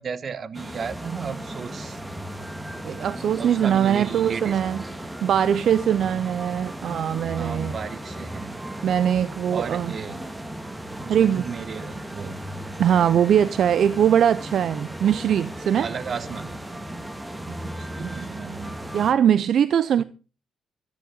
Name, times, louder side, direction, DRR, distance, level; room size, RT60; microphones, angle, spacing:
voice 1, 0.0-2.0 3.4-4.6 7.4-8.6 9.5-10.2 11.0-12.5 15.8-16.7 17.4-18.8 20.0-20.1, right 6 dB, 45° right, 1.2 m, -34 dB
sound 1, 0.5-19.1, right 1 dB, 10° right, 1.6 m, -36 dB
voice 2, 2.8-4.8 5.2-7.8 8.8-9.9 11.1-11.4 12.8-15.9 18.9-20.0, right 9 dB, 65° right, 0.5 m, -21 dB
14.0 x 13.5 x 3.9 m
cardioid pair, 90°, 0 cm